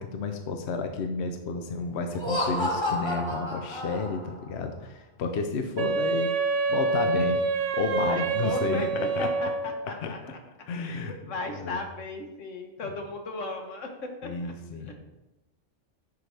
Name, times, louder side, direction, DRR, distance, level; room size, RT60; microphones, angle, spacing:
voice 1, 0.0-6.3 6.7-7.4 7.7-9.3 10.0-10.3 10.7-11.2 11.5-11.8 14.2-14.9, left 4 dB, 65° left, 5 dB, 0.9 m, -31 dB
Laughter, 2.1-4.4, left 1 dB, 25° left, 1.2 m, -30 dB
Wind instrument woodwind instrument, 5.8-9.9, right 4 dB, 80° right, 1.0 m, -27 dB
voice 2, 8.0-10.2 10.8-14.5 14.9-15.0, left 2 dB, 85° left, 4 dB, 1.4 m, -36 dB
10.5 x 4.8 x 3.4 m, 0.97 s
omnidirectional pair, 1.2 m